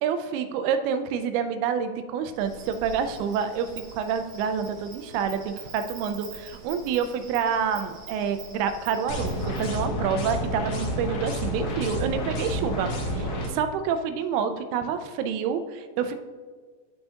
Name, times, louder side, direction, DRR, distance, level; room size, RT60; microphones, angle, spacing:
voice 1, 0.0-9.3 9.6-16.2, right 7 dB, 90° right, 9 dB, 2.6 m, -28 dB
Insect, 2.3-9.7, right 4 dB, 60° right, 3.1 m, -45 dB
sound 1, 9.1-13.5, equal, 80° left, 1.3 m, -29 dB
12.0 x 5.5 x 2.9 m, 1.5 s
omnidirectional pair, 4.4 m